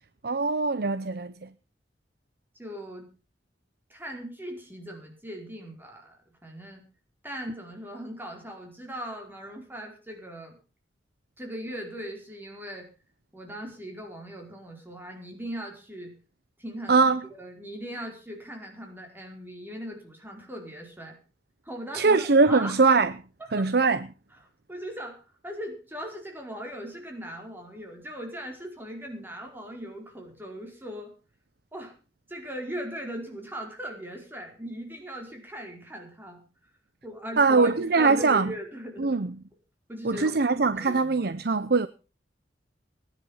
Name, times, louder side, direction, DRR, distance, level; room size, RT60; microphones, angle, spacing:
voice 1, 0.2-1.5 16.9-17.2 21.9-23.1 23.5-24.1 37.4-38.5 39.0-39.3 40.0-41.9, right 4 dB, 60° right, 0.8 m, -22 dB
voice 2, 2.6-3.1 3.9-6.8 7.2-10.6 11.4-12.9 13.3-16.1 16.6-21.2 21.6-22.7 23.4-23.9 24.7-31.1 31.7-31.9 32.3-36.4 37.0-39.2 39.9-41.2, equal, 10° right, 4.7 m, -39 dB
19.5 x 11.0 x 5.6 m
head